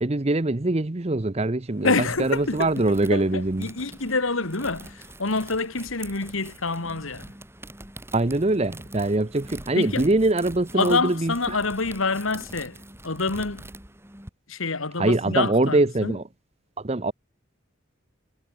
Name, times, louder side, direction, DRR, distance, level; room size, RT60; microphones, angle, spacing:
voice 1, 0.0-1.9 2.2-3.7 8.1-11.6 15.0-16.2 16.8-17.1, right 2 dB, 30° right, 0.8 m, -23 dB
sound 1, 1.7-14.3, right 1 dB, 10° right, 6.4 m, -44 dB
voice 2, 1.8-7.3 9.8-10.1 10.7-12.8 13.0-13.7 14.5-16.2, left 3 dB, 80° left, 2.2 m, -27 dB
head